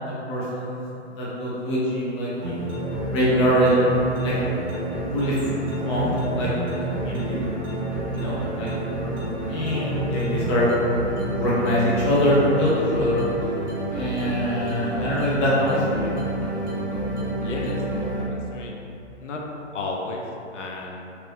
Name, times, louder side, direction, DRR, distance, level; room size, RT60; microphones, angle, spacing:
voice 1, 0.0-0.8 1.2-2.6 3.1-3.8 4.2-4.5 5.1-5.4 5.7-7.4 8.1-8.7 9.0-11.0 11.3-13.2 13.9-16.1, equal, 25° left, -7 dB, 0.6 m, -24 dB
sound 1, 2.4-18.2, right 2 dB, 20° right, 0.6 m, -29 dB
voice 2, 17.4-17.8 18.2-18.7 19.2-19.4 19.7-20.2 20.5-21.0, left 3 dB, 80° left, 0 dB, 0.6 m, -32 dB
3.0 x 2.5 x 3.2 m, 2.8 s
hypercardioid pair, 150°, 36 cm